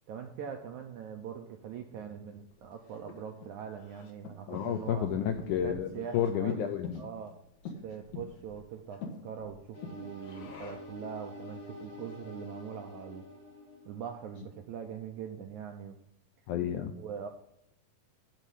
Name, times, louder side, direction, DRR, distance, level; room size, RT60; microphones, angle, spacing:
voice 1, 0.1-5.1 5.6-6.6 7.0-7.4 7.8-13.3 13.9-16.0 16.9-17.3, right 7 dB, 80° right, 4 dB, 1.8 m, -42 dB
Breathing, 2.5-11.0, left 4 dB, 60° left, 2.5 m, -47 dB
voice 2, 4.5-7.0 16.5-17.0, left 9 dB, 80° left, 6 dB, 1.8 m, -31 dB
sound 1, 9.7-14.9, left 2 dB, 40° left, 3.9 m, -48 dB
12.0 x 4.5 x 8.3 m, 0.74 s
omnidirectional pair, 4.3 m